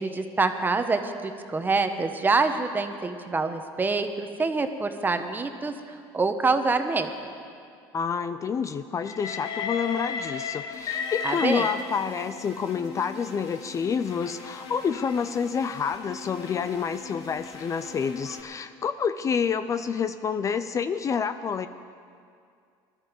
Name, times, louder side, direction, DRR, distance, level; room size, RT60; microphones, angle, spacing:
voice 1, 0.0-7.1 11.2-11.7, right 3 dB, 20° right, 7 dB, 1.1 m, -26 dB
voice 2, 7.9-21.7, left 6 dB, 35° left, 11 dB, 0.5 m, -28 dB
Train, 9.0-12.4 13.3-18.5, left 5 dB, 50° left, 1.2 m, -36 dB
sound 1, 10.7-18.4, left 3 dB, 65° left, 3.3 m, -44 dB
19.5 x 13.0 x 5.3 m, 2.3 s
supercardioid pair, 100°, 10 cm